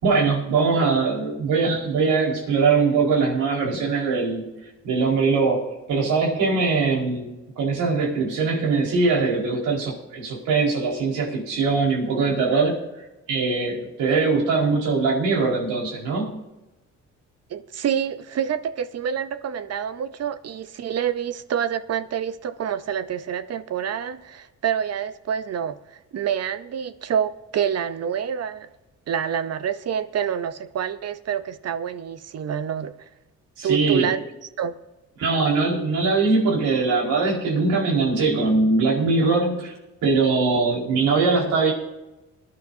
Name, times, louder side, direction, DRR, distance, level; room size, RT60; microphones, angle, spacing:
voice 1, 0.0-4.5 4.8-7.3 7.6-12.8 13.3-16.4 33.6-34.1 35.2-39.7 40.0-41.7, right 4 dB, 85° right, 4.6 m, -21 dB
voice 2, 17.5-28.7 29.1-32.9 33.6-34.2 34.6-34.7, right 8 dB, 55° right, 0.7 m, -27 dB
21.5 x 10.5 x 2.7 m
cardioid pair, 90°, 30 cm